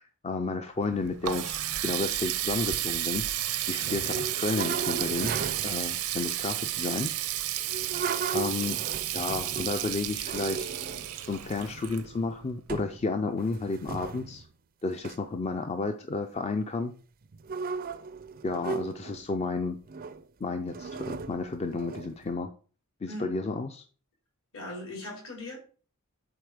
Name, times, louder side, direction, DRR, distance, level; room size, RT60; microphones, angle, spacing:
voice 1, 0.0-1.6 1.8-5.4 5.6-7.1 8.3-8.8 9.1-10.7 11.3-14.5 14.8-16.9 18.4-19.8 20.4-22.5 23.0-23.8, left 3 dB, 30° left, 7 dB, 0.5 m, -32 dB
Water tap faucet, 0.8-12.5, right 13 dB, 85° right, 0.6 m, -32 dB
sound 1, 3.8-5.8 7.6-9.8 10.2-11.2 11.7-12.3 12.7-13.0 13.3-14.5 15.0-15.2 17.3-19.3 19.9-20.2 20.7-22.3, right 5 dB, 40° right, 0.4 m, -36 dB
voice 2, 23.1-23.4 24.5-25.6, left 1 dB, 65° left, -1 dB, 3.9 m, -39 dB
7.9 x 4.0 x 5.0 m, 0.39 s
head